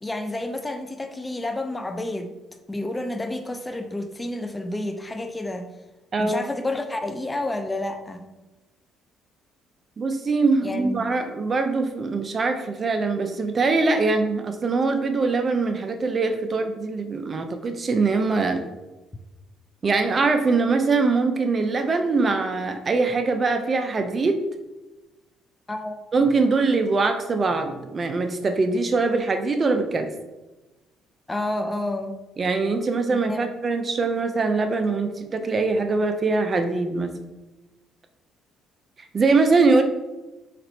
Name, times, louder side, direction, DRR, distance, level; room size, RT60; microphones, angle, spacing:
voice 1, 0.0-2.3 2.7-5.7 6.2-8.3 10.6-11.1 25.7-26.0 31.3-32.2 33.1-33.5, left 2 dB, 15° left, 6 dB, 0.5 m, -30 dB
voice 2, 6.1-6.5 10.0-18.6 19.8-24.4 26.1-30.1 32.4-37.1 39.1-39.8, right 3 dB, 40° right, 7 dB, 0.5 m, -22 dB
4.2 x 4.2 x 2.7 m, 1.1 s
supercardioid pair, 75°, 0 cm